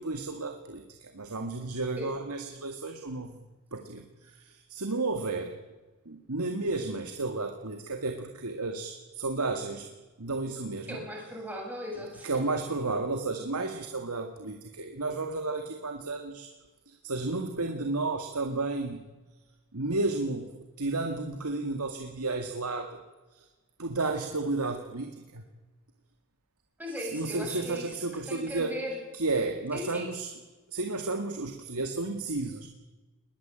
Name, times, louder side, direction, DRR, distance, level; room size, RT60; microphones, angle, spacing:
voice 1, 0.0-3.4 3.7-5.6 6.1-9.9 10.2-11.0 12.2-16.5 16.9-19.0 19.7-20.5 20.8-23.0 23.3-23.5 23.8-25.4 27.0-28.7 29.1-30.3 30.7-32.7, right 3 dB, 90° right, 5 dB, 2.0 m, -32 dB
voice 2, 10.9-12.3 26.8-29.0 29.7-30.1, left 1 dB, 10° right, -1 dB, 7.4 m, -38 dB
21.0 x 19.5 x 9.0 m, 1.2 s
head